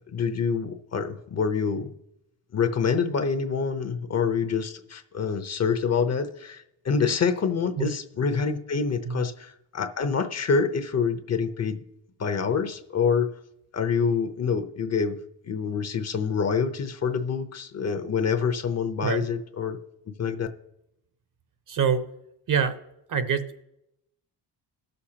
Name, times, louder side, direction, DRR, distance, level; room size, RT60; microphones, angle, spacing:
voice 1, 0.1-1.9 2.5-11.8 12.2-13.3 13.7-15.2 15.4-19.8 20.2-20.5, left 5 dB, 35° left, 8 dB, 0.8 m, -26 dB
voice 2, 21.7-22.0 22.5-22.8 23.1-23.6, right 6 dB, 50° right, 10 dB, 0.9 m, -25 dB
18.0 x 6.6 x 2.9 m, 0.83 s
cardioid pair, 95°, 43 cm